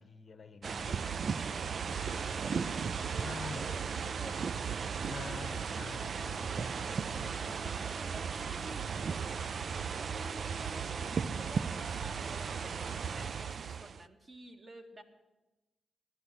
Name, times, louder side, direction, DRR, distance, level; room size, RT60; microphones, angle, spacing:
voice 1, 0.0-1.0 3.2-3.7 5.0-7.8, left 5 dB, 45° left, 0.8 m, -47 dB
sound 1, 0.6-14.0, right 6 dB, 55° right, 0.4 m, -36 dB
voice 2, 0.9-1.8 2.1-2.6 3.1-4.7 5.0-5.8 6.2-9.4 10.0-15.0, right 1 dB, 40° right, 1.9 m, -51 dB
14.0 x 11.0 x 6.1 m
cardioid pair, 100°, 0 cm